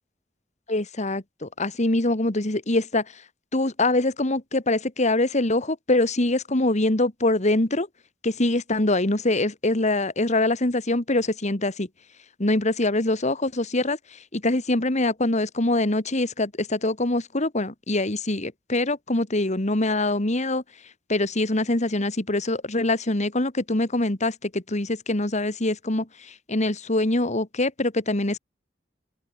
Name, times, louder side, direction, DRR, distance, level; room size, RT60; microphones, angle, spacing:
voice 1, 0.7-3.0 3.5-7.9 8.2-11.9 12.4-14.0 14.3-20.6 21.1-28.4, left 2 dB, 40° left, 2.1 m, -24 dB
open air
head